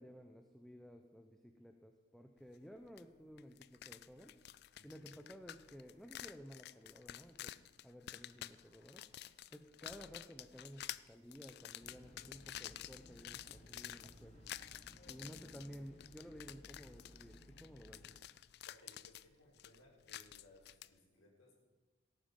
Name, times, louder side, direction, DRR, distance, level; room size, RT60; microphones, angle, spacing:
voice 1, 0.0-4.3 4.8-7.5 7.8-14.4 15.1-18.2, equal, ahead, 5 dB, 0.6 m, -55 dB
sound 1, 3.0-3.1 3.4-20.9, left 12 dB, 50° left, 0.3 m, -51 dB
sound 2, 4.7-17.3, right 2 dB, 40° right, 1.7 m, -76 dB
voice 2, 4.8-5.2 18.6-21.6, left 1 dB, 90° left, -3 dB, 4.3 m, -65 dB
sound 3, 11.8-18.2, left 1 dB, 35° left, 1.4 m, -60 dB
17.0 x 9.1 x 5.3 m, 1.2 s
head